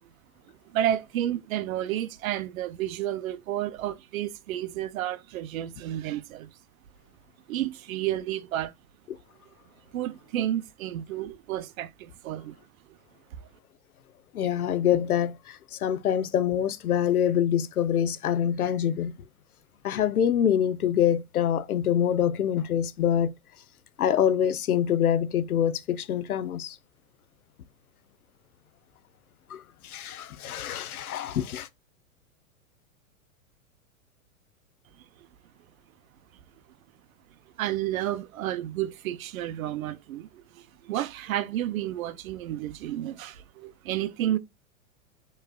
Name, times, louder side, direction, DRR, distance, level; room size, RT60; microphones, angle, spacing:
voice 1, 0.7-6.5 7.5-8.7 9.9-12.6 37.6-44.4, right 12 dB, 70° right, 0.7 m, -31 dB
voice 2, 14.3-19.1 19.8-23.3 24.0-26.8 29.8-31.7, left 9 dB, 90° left, 0.7 m, -25 dB
6.7 x 3.2 x 2.3 m
hypercardioid pair, 115°, 42 cm